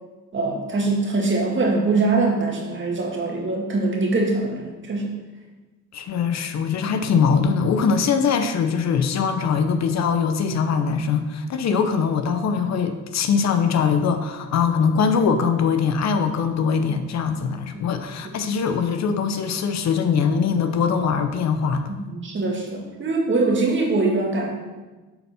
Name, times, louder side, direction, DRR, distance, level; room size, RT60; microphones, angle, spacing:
voice 1, 0.3-5.2 17.9-18.0 22.1-24.5, right 3 dB, 40° right, 0 dB, 1.8 m, -23 dB
voice 2, 5.9-22.0, left 6 dB, 60° left, 8 dB, 0.8 m, -22 dB
7.8 x 4.4 x 5.6 m, 1.2 s
cardioid pair, 90°, 30 cm